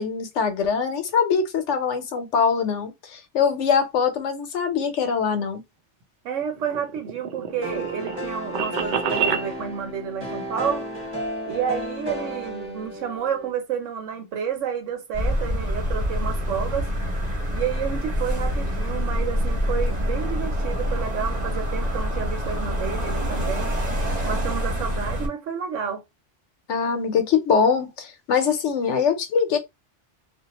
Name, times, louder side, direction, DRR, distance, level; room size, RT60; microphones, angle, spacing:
voice 1, 0.0-5.6 26.7-29.6, left 6 dB, 75° left, 1.0 m, -23 dB
voice 2, 6.2-10.9 11.4-16.9 17.5-23.7 24.3-26.0, right 7 dB, 85° right, 1.1 m, -30 dB
sound 1, 6.4-9.5, right 7 dB, 60° right, 0.5 m, -28 dB
sound 2, 7.6-13.5, equal, 10° right, 1.0 m, -33 dB
sound 3, 15.1-25.3, equal, 40° right, 0.9 m, -26 dB
2.4 x 2.2 x 2.9 m
omnidirectional pair, 1.2 m